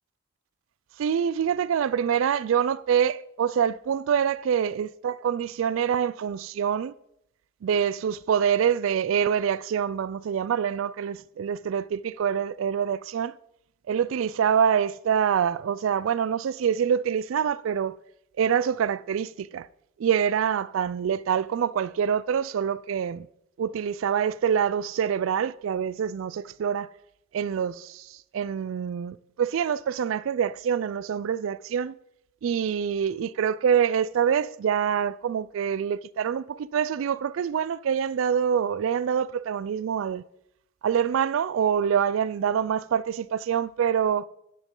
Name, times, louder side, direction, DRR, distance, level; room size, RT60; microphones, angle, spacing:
voice 1, 1.0-6.9 7.6-13.3 13.9-18.0 18.4-19.7 20.0-23.3 23.6-26.9 27.3-31.9 32.4-40.2 40.8-44.3, right 8 dB, 75° right, 0.3 m, -25 dB
10.0 x 9.8 x 3.8 m
head